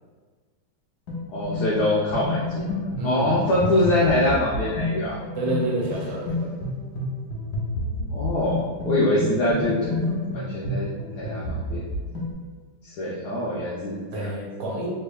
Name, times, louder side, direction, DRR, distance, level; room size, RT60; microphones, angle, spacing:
sound 1, 1.1-12.3, left 1 dB, 60° left, 1.2 m, -30 dB
voice 1, 1.3-2.8 3.0-5.2 8.1-10.0 10.3-10.9 11.1-11.8 12.8-14.3, left 1 dB, 80° left, -6 dB, 0.9 m, -24 dB
voice 2, 3.0-3.7 5.3-6.5 14.1-14.9, right 1 dB, 80° right, -3 dB, 1.7 m, -29 dB
3.4 x 3.3 x 2.3 m, 1.5 s
omnidirectional pair, 2.3 m